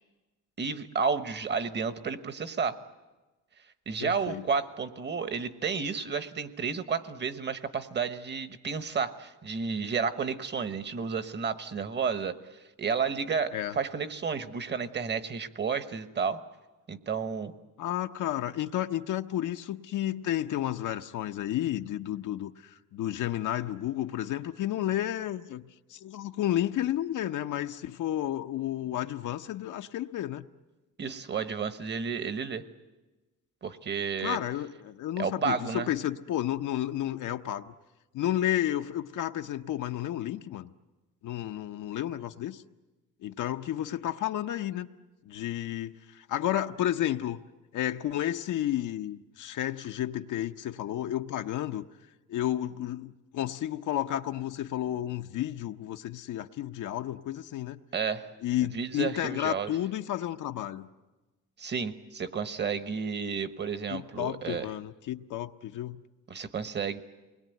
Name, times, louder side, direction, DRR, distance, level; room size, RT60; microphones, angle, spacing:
voice 1, 0.6-2.8 3.9-12.4 12.8-16.4 16.9-17.5 31.0-32.6 33.6-34.4 35.2-35.9 57.9-58.3 58.7-59.7 61.6-64.7 66.3-67.0, right 5 dB, 35° right, 12 dB, 1.1 m, -31 dB
voice 2, 4.0-4.4 13.5-13.7 17.8-30.4 34.2-37.7 38.1-40.7 41.2-42.6 43.2-44.9 45.3-47.4 47.7-51.8 52.3-57.8 58.4-60.9 63.9-66.0, left 12 dB, 70° left, 6 dB, 0.8 m, -32 dB
28.5 x 21.0 x 9.2 m, 1.1 s
cardioid pair, 145°, 32 cm